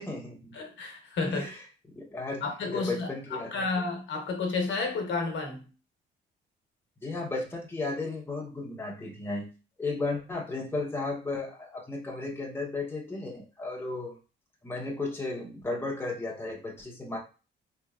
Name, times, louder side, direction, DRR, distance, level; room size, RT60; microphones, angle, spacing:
voice 1, 0.0-0.5 1.3-1.6 1.9-2.4 2.7-3.8 7.0-9.5 9.8-14.2 14.6-17.2, left 3 dB, 10° left, 0.8 m, -34 dB
voice 2, 0.5-1.5 2.4-5.7, left 3 dB, 65° left, 1.0 m, -31 dB
3.4 x 3.0 x 2.4 m
cardioid pair, 90°, 20 cm